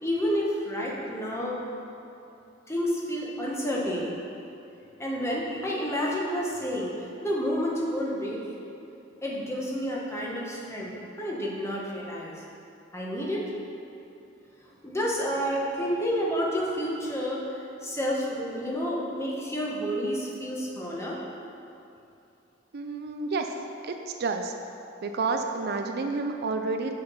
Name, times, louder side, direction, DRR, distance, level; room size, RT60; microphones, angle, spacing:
voice 1, 0.0-1.6 2.7-4.1 5.0-6.9 7.2-8.7 9.2-10.9 11.2-12.3 12.9-13.5 14.8-17.4 17.8-21.2, equal, 15° left, -4 dB, 1.2 m, -29 dB
voice 2, 22.7-23.5 23.8-23.9 24.2-24.5 25.0-26.9, right 4 dB, 55° right, 5 dB, 0.4 m, -29 dB
6.5 x 5.8 x 5.6 m, 2.8 s
head